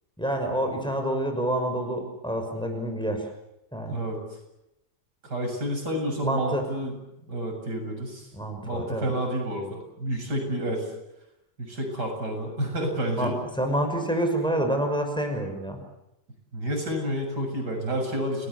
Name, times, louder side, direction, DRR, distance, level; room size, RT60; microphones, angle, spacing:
voice 1, 0.2-3.2 3.7-4.0 6.2-6.6 8.3-9.1 13.2-13.3 13.6-15.8, right 1 dB, 5° left, 4 dB, 6.0 m, -27 dB
voice 2, 5.2-6.9 7.3-8.3 8.6-10.9 11.6-13.4 16.5-18.5, equal, 80° right, 3 dB, 8.0 m, -29 dB
29.5 x 19.5 x 8.2 m, 0.88 s
omnidirectional pair, 1.8 m